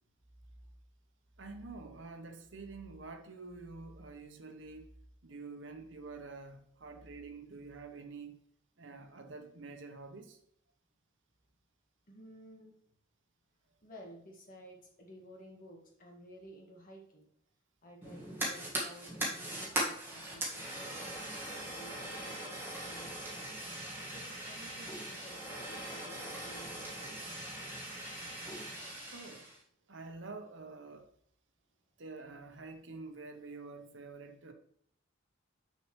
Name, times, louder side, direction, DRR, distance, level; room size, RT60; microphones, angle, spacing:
voice 1, 1.4-4.9 5.2-8.4 8.8-10.4 29.1-29.5 29.9-31.1 32.0-34.5, right 3 dB, 70° right, 0.9 m, -47 dB
voice 2, 12.1-12.7 13.8-17.3 17.8-23.6 23.8-27.4, equal, 45° left, 1.8 m, -54 dB
Fire, 18.0-29.6, right 1 dB, 10° right, 1.8 m, -40 dB
6.6 x 6.4 x 3.2 m
head